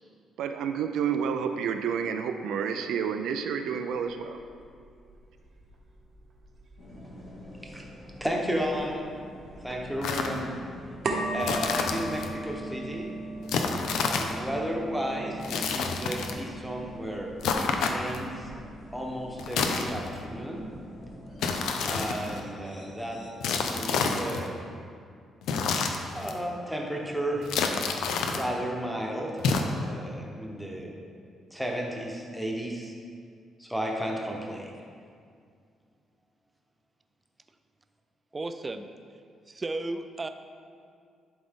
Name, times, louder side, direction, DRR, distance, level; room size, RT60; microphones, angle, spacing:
voice 1, 0.4-4.4, right 7 dB, 90° right, 7 dB, 0.4 m, -29 dB
sound 1, 3.9-22.5, right 2 dB, 50° right, 0.9 m, -40 dB
sound 2, 6.8-23.3, left 1 dB, 55° left, 1.9 m, -47 dB
voice 2, 8.2-9.1 9.6-10.5 11.3-13.1 14.0-18.5 18.9-20.7 21.9-23.2 23.6-24.6 26.1-27.5 28.3-29.4 29.8-30.9 31.5-32.9 33.6-34.7, equal, ahead, -2 dB, 1.0 m, -33 dB
sound 3, 10.0-10.4 11.4-12.3 13.5-14.4 15.4-16.4 17.4-18.3 19.4-20.3 21.4-22.4 23.4-24.5 25.4-26.4 27.4-28.5 29.4-29.6, left 5 dB, 90° left, 0.5 m, -29 dB
voice 3, 38.3-38.9 39.5-40.3, right 2 dB, 25° right, 8 dB, 0.4 m, -34 dB
11.0 x 4.0 x 3.6 m, 2.2 s
cardioid pair, 125°, 0 cm